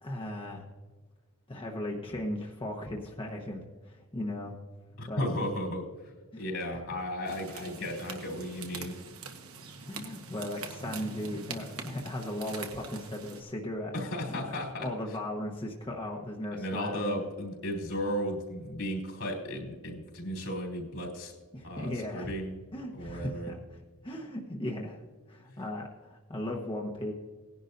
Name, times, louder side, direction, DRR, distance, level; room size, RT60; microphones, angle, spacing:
voice 1, 0.0-0.6 1.5-4.6 5.1-5.5 6.3-6.4 9.9-13.9 14.3-14.5 14.8-17.2 21.5-22.3 22.7-25.0 25.3-27.1, left 1 dB, 25° left, -1 dB, 1.0 m, -37 dB
voice 2, 5.0-5.8 6.4-9.0 13.9-14.9 16.5-21.3 21.6-22.5 22.9-23.5, equal, 70° left, 0 dB, 3.3 m, -35 dB
sound 1, 7.3-13.4, right 4 dB, 75° right, 1.4 m, -43 dB
18.5 x 11.0 x 2.6 m, 1.5 s
head